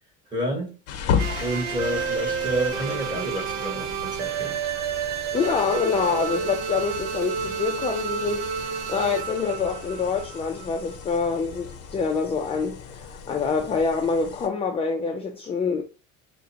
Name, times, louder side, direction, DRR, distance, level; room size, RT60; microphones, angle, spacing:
voice 1, 0.3-0.8 1.4-4.6, right 1 dB, 15° right, 1.4 m, -29 dB
sound 1, 0.9-14.5, left 7 dB, 55° left, 0.7 m, -35 dB
sound 2, 1.2-11.1, right 6 dB, 65° right, 0.7 m, -30 dB
voice 2, 5.3-15.8, left 5 dB, 20° left, 0.4 m, -26 dB
4.9 x 2.2 x 2.7 m
cardioid pair, 120°, 30 cm